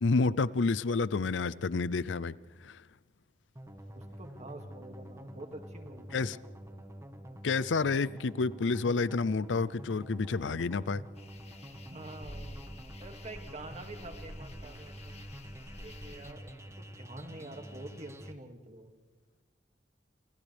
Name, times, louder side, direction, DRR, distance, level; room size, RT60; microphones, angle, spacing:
voice 1, 0.0-2.3 2.6-2.8 6.1-6.4 7.4-11.0, left 4 dB, 90° left, 0.5 m, -29 dB
sound 1, 3.6-18.3, equal, 15° right, 1.4 m, -47 dB
voice 2, 3.9-6.6 11.9-12.6 13.0-15.3 15.6-18.9, right 2 dB, 40° right, 2.3 m, -47 dB
sound 2, 11.2-16.3, left 1 dB, 35° left, 1.8 m, -49 dB
30.0 x 27.0 x 3.5 m
head